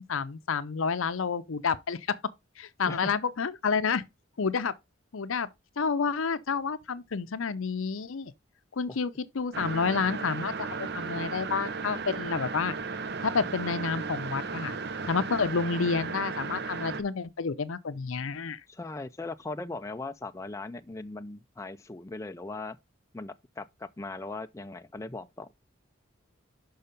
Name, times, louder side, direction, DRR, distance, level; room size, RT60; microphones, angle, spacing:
voice 1, 0.1-2.2 2.6-4.0 4.4-4.7 5.1-5.5 5.8-8.3 8.8-10.7 10.9-12.7 13.2-14.8 15.0-18.6, left 5 dB, 80° left, 0.6 m, -29 dB
sound 1, 9.5-17.0, right 4 dB, 55° right, 0.7 m, -35 dB
voice 2, 18.7-22.8 23.1-25.5, left 2 dB, 15° left, 0.4 m, -39 dB
5.6 x 5.5 x 5.2 m
head